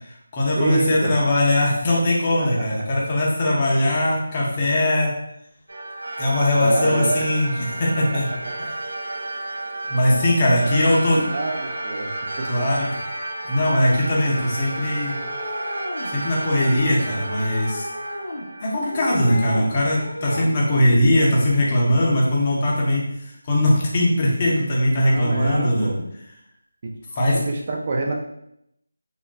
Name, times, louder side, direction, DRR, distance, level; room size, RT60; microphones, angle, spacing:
voice 1, 0.0-5.1 6.2-8.3 9.9-11.2 12.5-12.9 13.4-15.2 16.1-17.9 18.6-25.9 27.2-27.4, left 1 dB, 25° left, -3 dB, 0.7 m, -20 dB
voice 2, 0.5-1.1 2.4-2.7 3.8-4.1 6.5-7.3 8.1-8.2 8.6-8.7 9.9-10.2 10.6-12.1 12.4-12.6 24.9-26.1 26.8-28.1, right 2 dB, 30° right, 1 dB, 0.4 m, -27 dB
sound 1, 5.7-19.5, right 1 dB, 90° right, 0.5 m, -32 dB
sound 2, 15.0-16.1 17.1-18.4 18.8-19.7 20.0-20.5, left 1 dB, 70° left, 0.8 m, -33 dB
3.8 x 2.1 x 2.2 m, 0.77 s
figure-of-eight pair, 170°, 0 cm